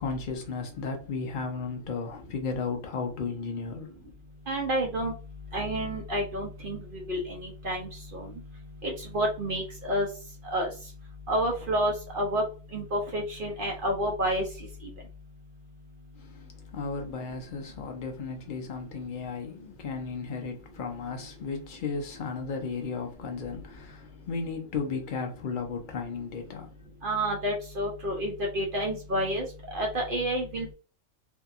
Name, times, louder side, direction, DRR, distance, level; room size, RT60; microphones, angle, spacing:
voice 1, 0.0-4.1 16.2-26.7, left 4 dB, 60° left, 0.5 m, -35 dB
voice 2, 4.5-5.1 5.5-8.3 8.8-10.1 10.5-10.7 11.3-12.4 12.7-14.4 27.0-30.7, equal, 55° right, 0.6 m, -29 dB
2.7 x 2.7 x 2.3 m
omnidirectional pair, 1.5 m